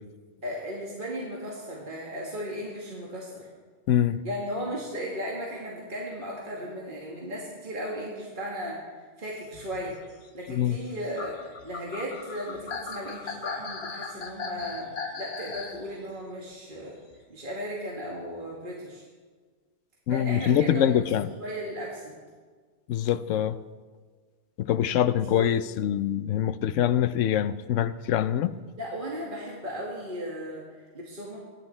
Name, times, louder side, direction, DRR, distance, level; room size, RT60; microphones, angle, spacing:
voice 1, 0.4-3.5 4.2-10.0 10.3-17.0 17.3-19.1 20.1-22.2 25.3-25.4 28.8-31.4, equal, 40° right, 2.3 m, -36 dB
voice 2, 3.9-4.2 10.5-10.8 20.1-21.3 22.9-23.6 24.6-28.6, left 10 dB, 80° left, 1.0 m, -24 dB
sound 1, 9.4-15.8 17.1-17.2, left 4 dB, 55° left, 1.4 m, -38 dB
24.0 x 10.5 x 4.4 m
omnidirectional pair, 1.3 m